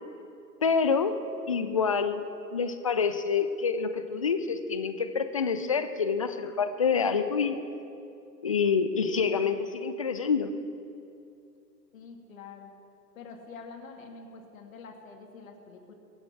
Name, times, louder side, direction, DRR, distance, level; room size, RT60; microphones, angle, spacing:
voice 1, 0.6-1.2 1.5-2.2 2.5-7.6 8.4-10.5, left 5 dB, 25° left, 10 dB, 0.4 m, -27 dB
voice 2, 11.9-12.7 13.2-15.9, left 4 dB, 55° left, 3 dB, 2.4 m, -46 dB
23.0 x 8.1 x 7.3 m, 2.6 s
figure-of-eight pair, 110°, 50 cm